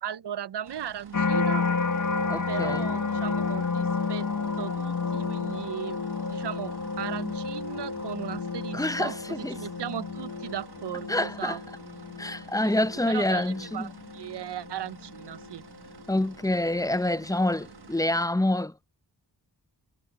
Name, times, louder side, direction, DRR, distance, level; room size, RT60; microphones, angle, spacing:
voice 1, 0.0-1.7 2.5-4.3 4.6-6.0 6.3-11.6 11.9-12.0 12.6-12.7 13.1-15.6, right 10 dB, 85° right, 0.6 m, -37 dB
sound 1, 0.6-18.3, right 6 dB, 70° right, 1.5 m, -51 dB
sound 2, 1.1-16.3 16.8-17.3, left 4 dB, 50° left, 1.1 m, -31 dB
voice 2, 2.3-2.9 8.7-9.6 11.1-11.6 12.2-13.9 16.1-18.9, left 1 dB, 10° left, 0.5 m, -27 dB
wide cardioid pair, 80°, 40 cm